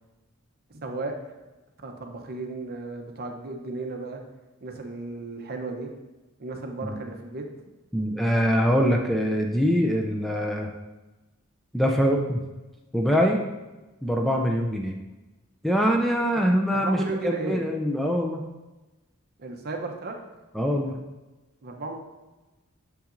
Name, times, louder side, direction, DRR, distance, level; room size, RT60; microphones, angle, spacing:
voice 1, 0.7-1.2 1.8-4.2 4.6-5.9 6.4-7.5 16.3-17.6 19.4-20.2 21.6-21.9, right 3 dB, 50° right, 3 dB, 0.7 m, -34 dB
voice 2, 7.9-10.7 11.7-12.5 12.9-13.5 14.0-15.0 15.6-18.4 20.5-21.0, equal, ahead, 1 dB, 0.4 m, -23 dB
6.6 x 5.7 x 2.5 m, 1.1 s
head